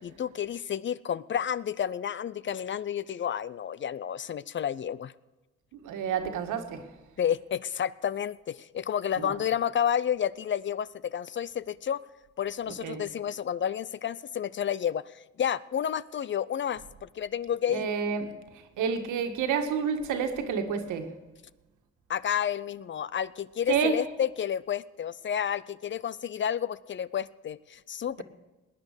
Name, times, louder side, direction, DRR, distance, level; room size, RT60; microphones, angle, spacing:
voice 1, 0.0-5.1 7.2-12.0 12.4-15.0 15.4-17.9 22.1-28.2, left 9 dB, 40° left, 19 dB, 0.5 m, -30 dB
voice 2, 5.8-6.9 9.2-9.3 12.8-13.0 17.7-18.3 18.8-21.1 23.7-24.0, right 6 dB, 85° right, 6 dB, 1.8 m, -29 dB
18.5 x 9.8 x 6.6 m, 1.1 s
cardioid pair, 90°, 30 cm